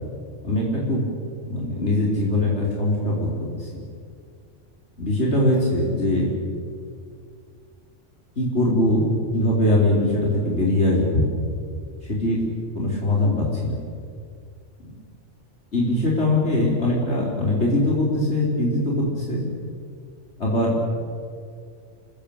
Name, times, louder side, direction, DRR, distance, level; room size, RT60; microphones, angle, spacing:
voice 1, 0.4-1.1 1.4-3.3 3.6-3.7 5.0-6.3 8.4-11.3 12.1-12.4 12.7-13.8 15.7-19.4 20.4-20.9, left 1 dB, 60° left, -4 dB, 4.8 m, -21 dB
29.5 x 19.5 x 8.9 m, 2.3 s
omnidirectional pair, 1.3 m